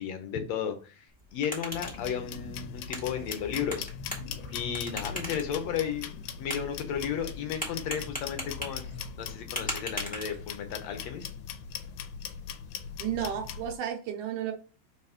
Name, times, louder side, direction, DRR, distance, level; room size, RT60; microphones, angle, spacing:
voice 1, 0.0-3.9 4.5-11.3, left 8 dB, 70° left, 6 dB, 1.8 m, -34 dB
sound 1, 1.1-10.7, equal, 5° left, 1.0 m, -41 dB
sound 2, 1.7-13.7, left 7 dB, 90° left, 2.3 m, -41 dB
sound 3, 1.9-9.4, left 3 dB, 45° left, 2.0 m, -47 dB
voice 2, 13.0-14.5, right 10 dB, 80° right, 3 dB, 2.2 m, -32 dB
4.8 x 4.1 x 5.6 m, 0.36 s
omnidirectional pair, 3.8 m